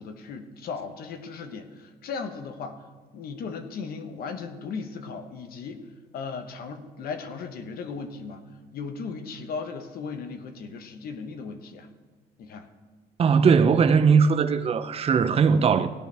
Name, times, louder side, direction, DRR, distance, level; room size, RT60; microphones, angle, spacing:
voice 1, 0.0-2.8 3.1-5.8 6.1-8.4 8.7-11.9 12.4-12.7, left 5 dB, 60° left, 1.2 m, -36 dB
voice 2, 13.2-15.9, right 6 dB, 35° right, 0.7 m, -19 dB
17.0 x 10.5 x 3.5 m
cardioid pair, 110°, 17 cm